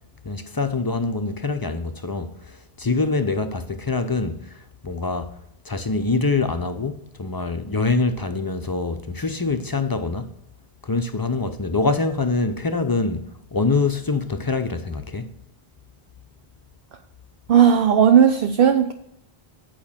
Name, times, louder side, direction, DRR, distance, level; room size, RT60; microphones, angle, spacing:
voice 1, 0.2-4.6 4.8-5.3 5.7-10.3 10.8-15.3, left 3 dB, 30° left, 0.5 m, -24 dB
voice 2, 17.5-18.9, right 8 dB, 65° right, 0.8 m, -15 dB
8.7 x 5.1 x 7.1 m
omnidirectional pair, 1.0 m